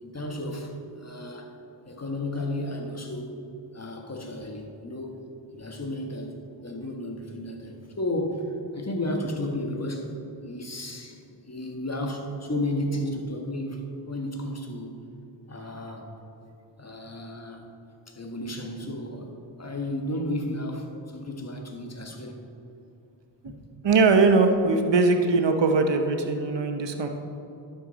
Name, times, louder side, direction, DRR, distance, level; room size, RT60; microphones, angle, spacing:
voice 1, 0.0-1.6 1.9-3.4 3.7-5.2 5.5-10.1 10.4-15.0 15.5-16.1 16.8-17.7 18.1-19.3 19.6-22.4 23.4-23.6, left 1 dB, 35° left, 2 dB, 1.4 m, -33 dB
voice 2, 23.8-27.1, right 3 dB, 65° right, 5 dB, 0.9 m, -21 dB
11.5 x 6.5 x 4.1 m, 2.8 s
cardioid pair, 50°, 46 cm